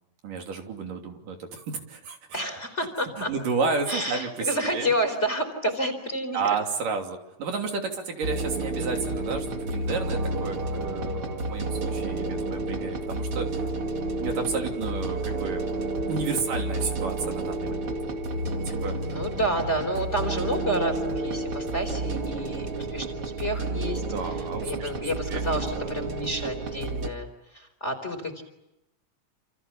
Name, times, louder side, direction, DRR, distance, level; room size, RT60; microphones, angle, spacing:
voice 1, 0.2-2.4 3.2-4.9 6.3-13.5 14.2-15.6 16.1-17.9 18.7-19.0 24.1-24.9 25.3-25.4 25.7-25.9, right 4 dB, 70° right, 3 dB, 4.6 m, -31 dB
voice 2, 2.3-3.3 3.9-6.6 19.1-28.4, equal, 20° left, 7 dB, 4.1 m, -30 dB
sound 1, 8.2-27.1, right 2 dB, 40° right, 2.8 m, -30 dB
29.0 x 28.5 x 7.1 m, 0.91 s
omnidirectional pair, 4.0 m